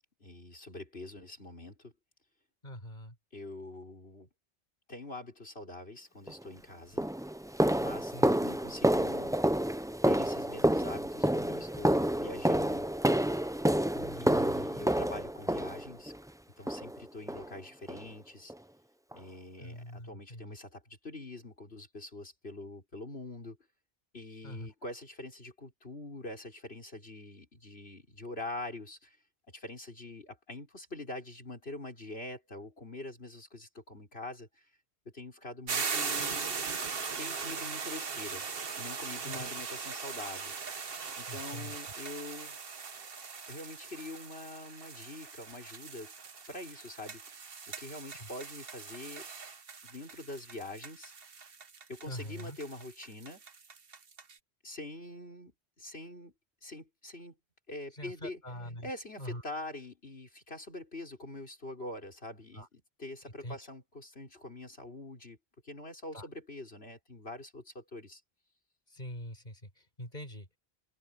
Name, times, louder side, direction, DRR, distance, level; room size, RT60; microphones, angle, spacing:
voice 1, 0.2-1.9 3.3-4.3 4.9-7.0 7.8-8.1 8.4-9.4 10.0-12.9 14.2-16.1 16.6-18.5 19.1-23.6 24.1-29.2 29.5-34.7 35.1-36.6 37.2-38.5 38.7-40.5 41.2-42.6 43.5-46.1 46.5-49.3 49.8-51.1 51.9-53.4 54.6-55.5 55.8-56.3 56.6-57.4 57.7-58.4 58.8-65.4 65.6-68.2, left 2 dB, 75° left, 5.7 m, -44 dB
voice 2, 2.6-3.2 8.1-8.4 13.9-14.7 19.6-20.6 24.4-24.7 39.2-39.6 41.3-41.8 48.2-48.3 52.1-52.6 57.9-58.9 59.2-59.4 62.5-62.7 63.4-63.6 66.1-66.3 68.9-70.5, equal, 45° left, 6.1 m, -44 dB
sound 1, 6.3-6.4 7.0-16.2 16.7-17.0 17.3-17.5 17.9-18.1 18.5-18.6 19.1-19.2, right 1 dB, 5° right, 0.5 m, -29 dB
sound 2, 35.7-54.4, right 5 dB, 65° right, 1.4 m, -40 dB
omnidirectional pair, 1.1 m